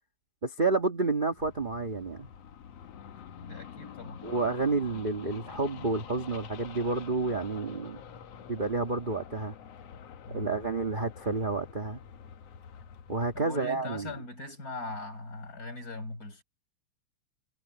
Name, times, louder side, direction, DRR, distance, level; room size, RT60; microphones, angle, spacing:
voice 1, 0.4-2.3 4.2-8.0 8.5-9.5 10.3-12.0 13.1-14.1, right 3 dB, 30° right, 0.8 m, -30 dB
sound 1, 1.3-13.4, left 8 dB, 60° left, 2.2 m, -47 dB
voice 2, 3.4-4.2 10.3-10.5 13.3-16.4, left 2 dB, 25° left, 5.4 m, -40 dB
omnidirectional pair, 3.6 m